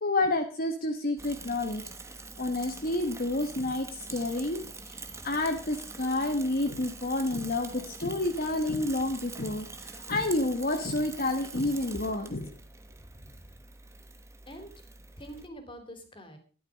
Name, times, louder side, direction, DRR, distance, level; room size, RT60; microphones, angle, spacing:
voice 1, 0.0-1.8 2.4-4.6 4.9-5.0 5.2-12.5, left 2 dB, 50° left, 5 dB, 1.2 m, -29 dB
Bicycle / Mechanisms, 1.2-15.5, right 3 dB, 15° right, 1.2 m, -45 dB
voice 2, 12.9-13.6 14.5-14.7 15.2-16.4, equal, 25° left, 6 dB, 3.3 m, -47 dB
13.0 x 11.5 x 5.1 m, 0.39 s
head